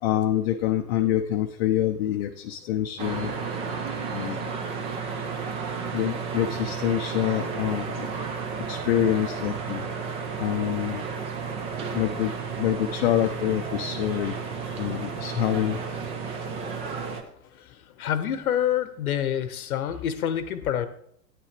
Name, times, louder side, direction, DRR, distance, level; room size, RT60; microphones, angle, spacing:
voice 1, 0.0-3.3 4.1-4.5 5.9-8.1 8.7-9.8 10.4-11.0 11.9-14.4 14.8-15.8, left 11 dB, 40° left, 5 dB, 0.6 m, -26 dB
sound 1, 3.0-17.2, right 5 dB, 15° right, 0.5 m, -32 dB
voice 2, 18.0-20.9, left 10 dB, 60° left, 11 dB, 0.9 m, -27 dB
9.8 x 9.6 x 3.3 m, 0.67 s
figure-of-eight pair, 105°, 50 cm